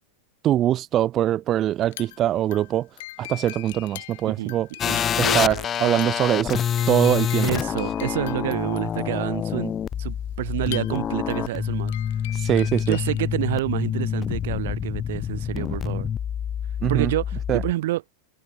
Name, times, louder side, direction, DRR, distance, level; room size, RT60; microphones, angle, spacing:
voice 1, 0.4-2.9 3.2-4.7 5.2-6.6 6.9-7.5 12.3-13.0 16.8-17.1 17.5-17.6, right 12 dB, 30° right, 0.5 m, -22 dB
sound 1, 1.8-13.3, left 17 dB, 55° left, 5.2 m, -42 dB
voice 2, 4.2-5.0 7.4-11.9 12.9-16.1 16.9-18.0, right 16 dB, 55° right, 2.1 m, -28 dB
sound 2, 4.8-17.7, left 9 dB, 25° left, 0.6 m, -27 dB
Piano, 5.2-12.2, left 1 dB, 90° left, 7.0 m, -42 dB
figure-of-eight pair, 90°, 0 cm